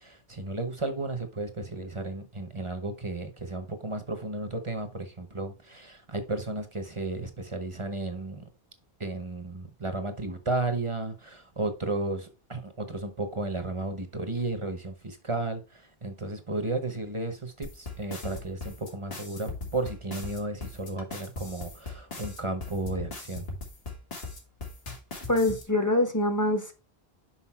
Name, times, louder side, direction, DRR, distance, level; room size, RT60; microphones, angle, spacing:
voice 1, 0.0-8.5 9.0-23.5, right 2 dB, 30° right, 1.0 m, -33 dB
sound 1, 17.6-25.6, left 3 dB, 70° left, 1.9 m, -39 dB
voice 2, 25.3-26.7, left 1 dB, 20° left, 1.1 m, -24 dB
5.9 x 5.4 x 4.4 m
omnidirectional pair, 1.1 m